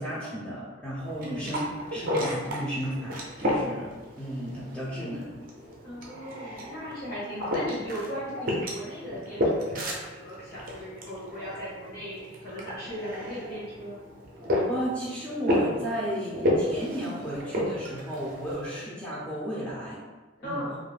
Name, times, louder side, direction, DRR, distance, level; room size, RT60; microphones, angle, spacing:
voice 1, 0.0-5.3 14.7-20.0 20.4-20.6, equal, 5° left, -8 dB, 0.5 m, -34 dB
sound 1, 1.0-18.8, left 1 dB, 45° right, 0.5 m, -32 dB
voice 2, 1.2-1.6 5.8-14.0 20.4-20.8, equal, 55° left, -8 dB, 0.9 m, -37 dB
2.4 x 2.0 x 3.2 m, 1.2 s
head